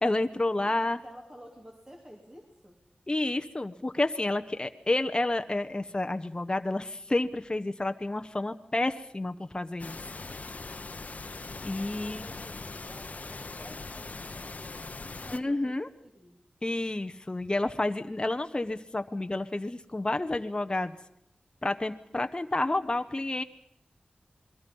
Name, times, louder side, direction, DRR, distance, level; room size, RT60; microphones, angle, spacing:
voice 1, 0.0-1.0 3.1-10.0 11.6-12.2 15.3-15.9 16.6-20.9 21.6-23.4, left 2 dB, 25° left, 8 dB, 1.0 m, -30 dB
voice 2, 0.6-2.8 12.0-15.8 16.1-16.4, equal, 20° right, 0 dB, 3.3 m, -51 dB
sound 1, 9.8-15.4, left 3 dB, 55° left, 1.0 m, -41 dB
28.0 x 21.5 x 5.5 m, 0.76 s
wide cardioid pair, 60°, 3 cm